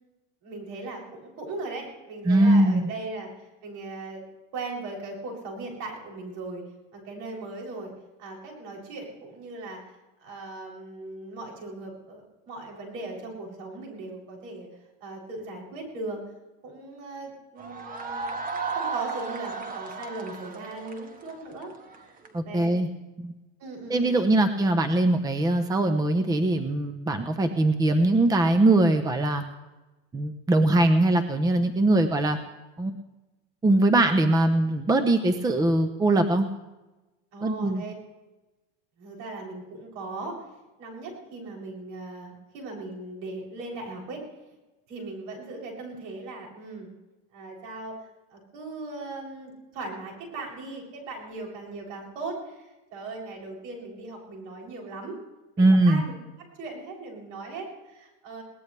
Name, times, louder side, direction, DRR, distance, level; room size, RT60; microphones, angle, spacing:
voice 1, 0.4-4.2 4.5-6.6 6.9-7.9 8.2-14.7 15.0-16.2 16.6-18.3 18.7-21.7 22.0-22.1 22.4-22.8 23.6-24.2 37.3-37.9 39.0-40.4 40.8-44.2 44.9-46.9 47.3-48.0 48.3-55.2 55.6-56.1 56.4-58.4, right 2 dB, 65° right, 0 dB, 7.9 m, -38 dB
voice 2, 2.3-2.9 22.3-22.9 23.2-23.3 23.9-29.4 30.1-32.4 32.8-32.9 33.6-36.5 37.4-37.8 55.6-56.0, right 2 dB, 10° right, 8 dB, 0.9 m, -21 dB
sound 1, 17.6-22.3, right 4 dB, 30° right, 1.9 m, -34 dB
22.0 x 19.0 x 3.4 m, 1.1 s
supercardioid pair, 140°, 29 cm